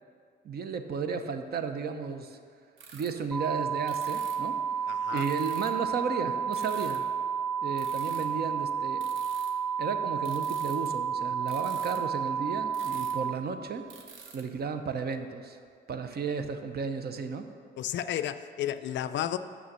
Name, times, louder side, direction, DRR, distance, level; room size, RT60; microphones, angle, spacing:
voice 1, 0.4-2.4 2.9-4.6 5.1-7.1 7.6-9.1 9.8-13.8 14.3-15.6 15.9-17.5, right 5 dB, 50° right, 8 dB, 0.7 m, -34 dB
sound 1, 2.8-3.1 3.4-3.5 3.9-4.5 5.2-5.9 6.5-7.1 7.5-10.9 11.3-13.3 13.5-13.6 13.8-14.4, right 5 dB, 85° right, 0.9 m, -49 dB
sound 2, 3.3-13.3, right 7 dB, 5° left, 0.5 m, -31 dB
voice 2, 4.9-5.3 17.8-19.4, left 11 dB, 70° left, 12 dB, 0.4 m, -32 dB
6.2 x 6.1 x 6.8 m, 2.2 s
cardioid pair, 90°, 20 cm